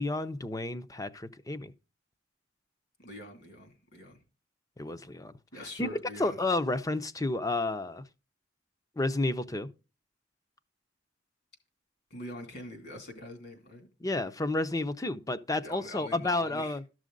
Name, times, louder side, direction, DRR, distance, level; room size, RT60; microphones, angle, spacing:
voice 1, 0.0-1.7 4.8-5.3 5.8-5.9 6.2-8.0 9.0-9.7 14.0-16.8, left 2 dB, 20° left, 0.6 m, -31 dB
voice 2, 3.0-4.2 5.5-6.4 12.1-13.9 15.6-16.8, left 1 dB, 60° left, 2.7 m, -44 dB
13.0 x 6.3 x 3.9 m
head